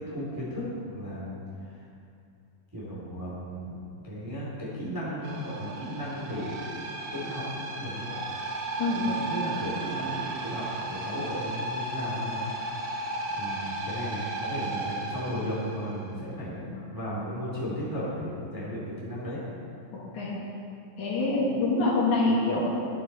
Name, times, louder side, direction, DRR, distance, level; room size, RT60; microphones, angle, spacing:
voice 1, 0.0-1.3 1.7-1.8 2.7-3.8 4.0-6.8 7.1-8.2 9.0-12.4 12.9-13.0 13.3-19.4, equal, 5° right, -7 dB, 1.9 m, -35 dB
sound 1, 5.2-16.0, right 2 dB, 65° right, 2.2 m, -34 dB
voice 2, 19.9-20.3 21.0-22.6, left 2 dB, 65° left, -5 dB, 3.0 m, -26 dB
12.5 x 8.3 x 4.1 m, 2.5 s
omnidirectional pair, 3.9 m